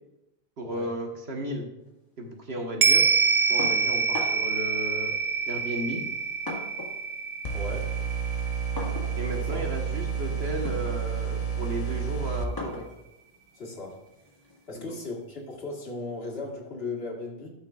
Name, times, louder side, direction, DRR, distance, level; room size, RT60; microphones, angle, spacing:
voice 1, 0.6-1.7 2.2-3.0 3.5-5.1 5.5-6.0 9.2-12.8 14.7-15.0, right 1 dB, 75° right, 2 dB, 1.5 m, -34 dB
sound 1, 2.8-11.4 11.7-11.8, right 5 dB, 50° right, 0.3 m, -27 dB
sound 2, 3.6-4.6 5.5-7.1 7.4-14.7, left 1 dB, 20° left, 1.7 m, -41 dB
sound 3, 7.4-12.4, right 7 dB, 45° left, 0.6 m, -30 dB
voice 2, 7.5-7.9 9.4-9.6 13.5-14.0 14.7-17.5, left 3 dB, 70° left, -2 dB, 1.8 m, -37 dB
12.0 x 6.5 x 2.4 m, 0.92 s
omnidirectional pair, 1.1 m